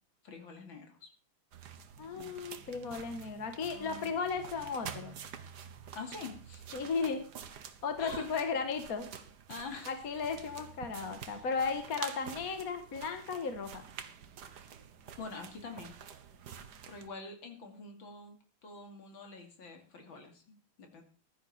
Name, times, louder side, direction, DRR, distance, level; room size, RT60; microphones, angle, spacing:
voice 1, 0.2-1.1 2.2-2.3 3.6-4.1 5.9-6.8 8.0-8.3 9.5-9.9 15.2-16.0 16.9-18.4 18.6-21.0, left 3 dB, 60° left, 4 dB, 3.2 m, -46 dB
sound 1, 1.5-17.1, right 7 dB, 55° right, 1.5 m, -48 dB
voice 2, 2.0-5.1 6.7-7.3 7.8-9.1 9.9-13.8, left 5 dB, 45° left, 7 dB, 1.7 m, -35 dB
15.5 x 11.5 x 4.3 m, 0.37 s
omnidirectional pair, 2.4 m